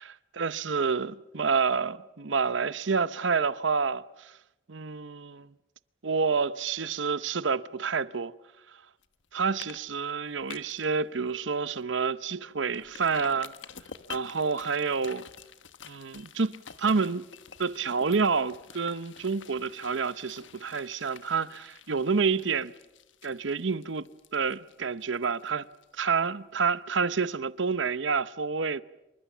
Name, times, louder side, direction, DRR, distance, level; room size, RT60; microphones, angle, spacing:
voice 1, 0.4-4.3 4.7-5.5 6.0-8.3 9.3-13.5 14.1-15.2 15.9-16.5 16.8-17.2 17.6-22.7 23.2-24.1 24.3-25.7 26.0-28.8, right 5 dB, 75° right, 0.8 m, -28 dB
sound 1, 9.0-9.3 9.6-9.8 10.1-10.9 11.3-11.4 11.8-11.9 12.7-26.3 26.6-26.7, left 7 dB, 80° left, 1.3 m, -48 dB
27.0 x 24.0 x 7.3 m
head